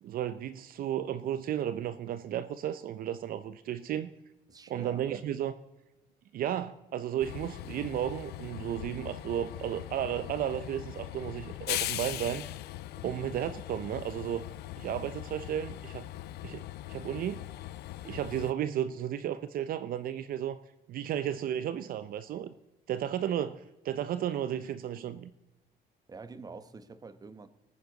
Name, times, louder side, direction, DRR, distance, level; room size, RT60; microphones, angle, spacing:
voice 1, 0.0-4.1 4.7-5.5 6.3-12.4 13.0-14.4 14.8-16.0 16.4-16.6 16.9-17.5 18.0-20.6 20.9-22.5 22.9-25.3, right 10 dB, 60° right, 13 dB, 0.6 m, -33 dB
voice 2, 4.5-5.2 13.1-13.3 26.1-27.5, right 4 dB, 20° right, 12 dB, 0.9 m, -46 dB
Train, 7.2-18.5, left 15 dB, 75° left, 0.5 m, -40 dB
18.5 x 9.5 x 3.9 m, 1.0 s
cardioid pair, 110°, 17 cm